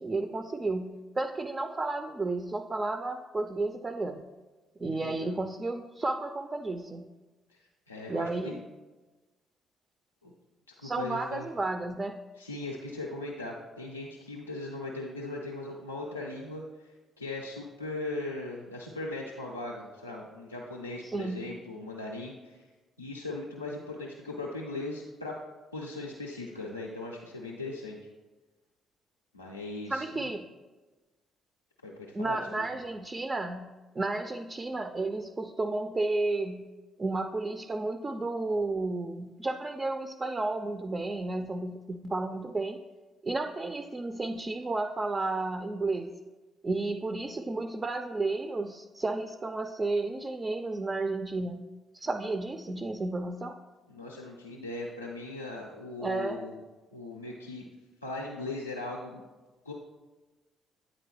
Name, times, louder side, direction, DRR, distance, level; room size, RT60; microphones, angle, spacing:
voice 1, 0.0-4.2 4.8-7.1 8.1-8.6 10.8-12.2 21.0-21.5 29.9-30.5 32.1-36.7 37.0-42.8 43.2-46.1 46.6-51.6 51.9-53.6 56.0-56.4, right 2 dB, 25° right, 7 dB, 0.3 m, -32 dB
voice 2, 4.9-5.4 7.5-8.7 10.2-10.3 10.7-11.5 12.4-22.7 23.0-25.4 25.7-28.0 29.3-30.3 31.8-32.4 53.9-56.5 56.9-57.7 58.0-59.2 59.6-59.7, left 2 dB, 90° left, -3 dB, 0.4 m, -39 dB
8.7 x 4.0 x 3.1 m, 1.2 s
figure-of-eight pair, 45°, 0 cm